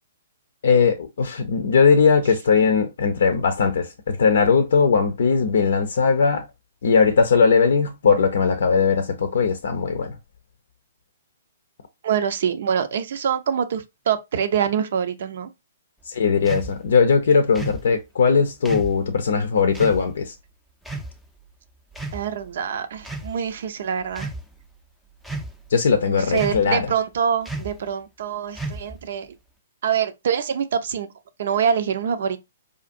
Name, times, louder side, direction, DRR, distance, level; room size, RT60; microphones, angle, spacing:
voice 1, 0.6-6.5 6.8-10.2 16.1-20.3 25.7-26.9, left 5 dB, 60° left, 0.5 m, -19 dB
voice 2, 12.0-15.5 22.1-24.3 26.0-29.3 29.8-31.1 31.4-32.4, right 7 dB, 55° right, 0.6 m, -25 dB
sound 1, 16.5-16.7 17.5-17.8 18.7-19.0 19.7-20.0 20.9-21.1 21.9-22.5 23.0-23.3 24.1-24.4 25.2-25.7 26.3-26.7 27.5-27.8 28.5-29.0, right 2 dB, ahead, 0.5 m, -32 dB
5.0 x 2.5 x 2.5 m
figure-of-eight pair, 120°, 0 cm